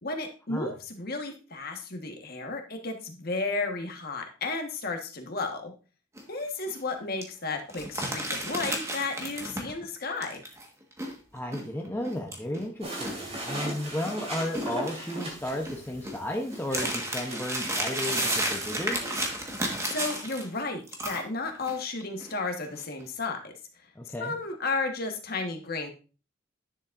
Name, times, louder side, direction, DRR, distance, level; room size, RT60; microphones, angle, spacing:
voice 1, 0.0-5.7 6.3-10.4 19.8-23.5 24.2-25.9, left 3 dB, 50° left, 4 dB, 1.4 m, -33 dB
sound 1, 6.2-6.4 6.7-6.8 7.2-7.3 7.7-9.9 10.2-14.1 14.4-20.6 20.9-21.8 22.0-22.3 22.7-23.0, right 1 dB, 15° right, 1.4 m, -32 dB
voice 2, 11.3-19.0 24.0-24.3, left 1 dB, 10° left, 1 dB, 0.8 m, -34 dB
sound 2, 12.8-19.2, right 1 dB, 30° right, 2.3 m, -39 dB
10.0 x 7.2 x 2.5 m, 0.34 s
head